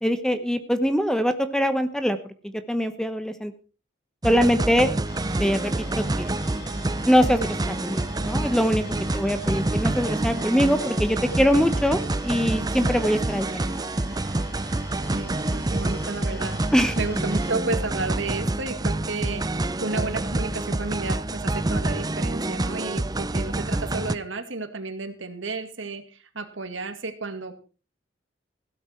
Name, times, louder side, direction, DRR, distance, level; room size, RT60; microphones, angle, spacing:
voice 1, 0.0-2.2 2.7-3.5 4.2-4.9 5.4-5.7 6.2-6.3 7.1-8.8 9.1-13.6 16.7-16.9, equal, 5° left, 10 dB, 1.0 m, -23 dB
sound 1, 4.2-24.1, right 2 dB, 20° right, 0.6 m, -27 dB
sound 2, 5.0-17.5, left 1 dB, 55° left, 7.7 m, -44 dB
voice 2, 15.1-16.6 17.0-19.4 19.8-27.6, right 3 dB, 70° right, 9 dB, 2.2 m, -32 dB
16.5 x 12.5 x 4.5 m, 0.36 s
head